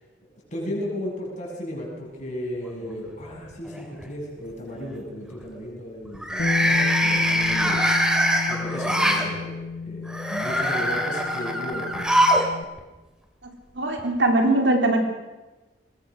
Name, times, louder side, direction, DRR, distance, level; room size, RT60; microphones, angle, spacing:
voice 1, 0.5-7.9 8.4-9.6 9.8-12.1, equal, 40° left, -3 dB, 7.4 m, -34 dB
sound 1, 2.6-3.3 3.7-4.0 6.1-9.2 10.1-12.5 12.8-12.9 14.0-14.1, equal, 5° right, 2.6 m, -23 dB
Bass guitar, 6.4-12.6, left 4 dB, 60° left, 1.1 m, -31 dB
voice 2, 13.7-15.0, right 2 dB, 65° right, 3 dB, 3.4 m, -20 dB
22.0 x 20.5 x 6.4 m, 1.2 s
head